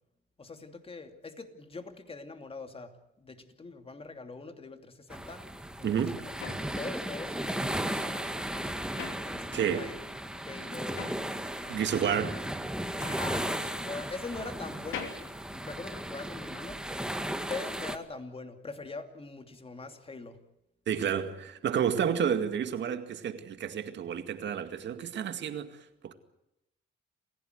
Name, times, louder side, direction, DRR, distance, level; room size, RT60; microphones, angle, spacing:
voice 1, 0.4-5.5 5.8-8.6 9.2-11.1 11.6-12.1 13.0-16.9 17.5-20.4, left 3 dB, 30° left, 2.7 m, -43 dB
sound 1, 5.1-18.0, right 1 dB, 5° right, 1.7 m, -36 dB
voice 2, 5.8-6.2 9.5-9.9 11.7-12.4 20.9-26.1, right 8 dB, 65° right, 2.1 m, -30 dB
sound 2, 6.4-9.9 10.2-16.5, left 7 dB, 90° left, 3.0 m, -45 dB
27.5 x 16.0 x 8.0 m
cardioid pair, 90°, 20 cm